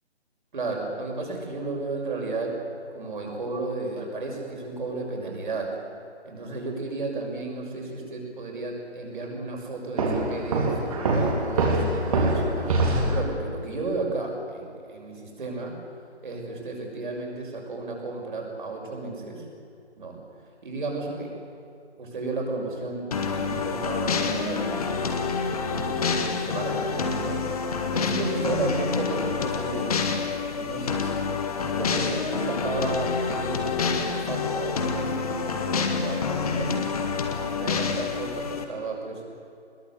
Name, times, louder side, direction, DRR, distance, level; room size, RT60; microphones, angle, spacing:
voice 1, 0.5-2.6 2.9-5.8 6.2-15.7 16.2-19.4 20.0-20.2 20.6-21.4 22.0-25.2 25.5-25.9 26.4-30.0 30.5-31.1 31.6-39.2, right 3 dB, 45° right, 0 dB, 6.1 m, -33 dB
Walk footsteps, 10.0-13.3, right 2 dB, 30° right, 3.5 m, -24 dB
sound 1, 23.1-38.6, left 5 dB, 35° left, 1.8 m, -27 dB
21.5 x 21.0 x 8.2 m, 2.6 s
figure-of-eight pair, 145°, 34 cm